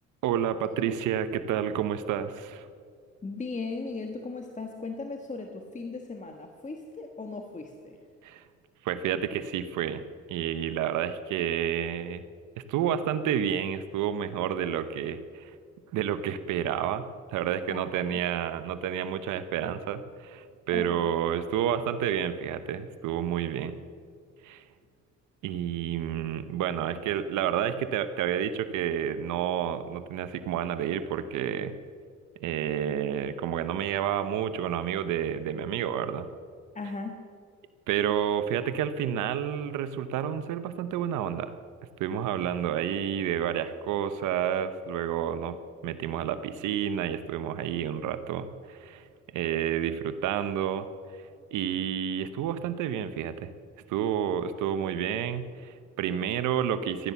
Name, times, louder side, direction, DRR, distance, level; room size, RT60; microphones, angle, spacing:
voice 1, 0.2-2.7 8.2-8.4 8.8-10.0 10.3-12.2 12.7-15.5 15.9-17.1 17.3-23.8 24.4-24.6 25.4-31.7 32.4-36.3 37.9-41.5 42.0-45.6 45.8-49.0 49.3-50.9 51.1-51.2 51.5-53.5 53.9-57.1, right 9 dB, 90° right, 11 dB, 0.9 m, -30 dB
voice 2, 3.2-8.0 17.7-18.2 20.7-21.1 36.7-37.2, left 3 dB, 25° left, 4 dB, 1.4 m, -37 dB
15.0 x 12.0 x 7.0 m, 2.1 s
cardioid pair, 90°, 30 cm